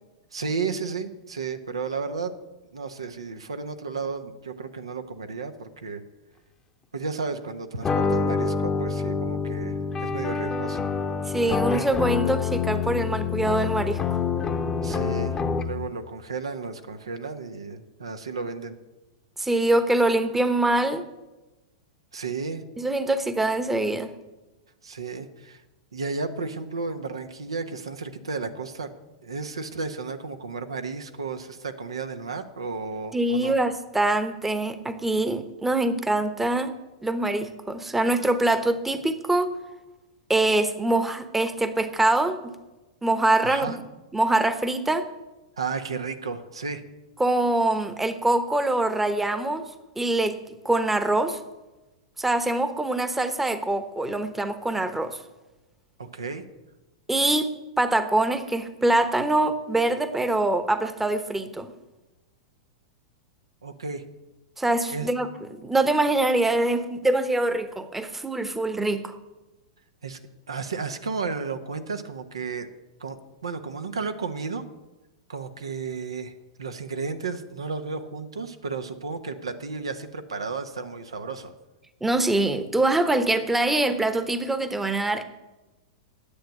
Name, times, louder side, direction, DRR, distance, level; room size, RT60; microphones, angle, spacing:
voice 1, 0.3-2.3 2.7-6.0 6.9-10.8 14.8-18.8 22.1-22.6 24.8-25.6 25.9-28.9 29.2-33.6 43.4-43.8 45.6-46.8 56.0-56.4 63.6-64.0 64.9-65.1 70.0-70.2 70.5-72.7 73.0-73.2 73.4-74.6 75.3-81.5, right 4 dB, 80° right, 7 dB, 1.1 m, -33 dB
sound 1, 7.8-15.9, left 5 dB, 20° left, 0.9 m, -27 dB
voice 2, 11.3-14.2 19.4-21.1 22.8-24.1 33.1-36.7 37.0-39.5 40.3-42.5 43.0-43.8 44.1-45.1 47.2-49.7 50.0-50.4 50.6-51.4 52.2-55.2 57.1-57.5 57.8-61.7 64.6-69.2 82.0-85.2, right 2 dB, 10° right, 11 dB, 1.0 m, -24 dB
10.0 x 8.0 x 9.1 m, 1.1 s
figure-of-eight pair, 100°, 3 cm